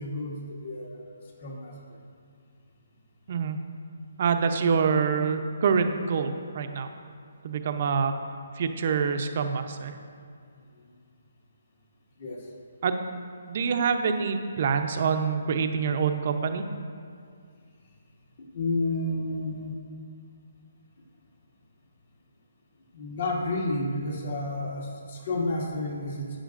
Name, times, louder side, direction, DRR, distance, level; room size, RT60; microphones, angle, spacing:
voice 1, 0.0-1.7 12.2-12.5 18.5-19.7 22.9-26.4, left 2 dB, 60° left, -2 dB, 2.0 m, -31 dB
voice 2, 3.3-3.6 4.2-6.9 7.4-8.1 8.6-9.9 12.8-13.0 13.5-16.6, right 6 dB, 45° right, 7 dB, 0.7 m, -26 dB
12.5 x 8.8 x 2.6 m, 2.3 s
hypercardioid pair, 160°, 0 cm